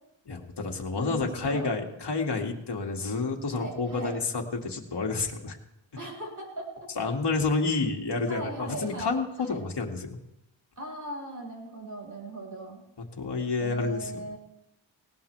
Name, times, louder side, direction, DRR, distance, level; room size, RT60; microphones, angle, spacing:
voice 1, 0.3-5.6 7.0-10.2 13.2-14.3, left 4 dB, 55° left, 0 dB, 2.4 m, -29 dB
voice 2, 1.0-1.7 3.5-4.2 6.0-6.9 8.3-9.6 10.8-12.8 13.6-14.4, right 2 dB, 40° right, -2 dB, 7.3 m, -38 dB
19.0 x 18.5 x 3.5 m, 0.85 s
cardioid pair, 75°, 48 cm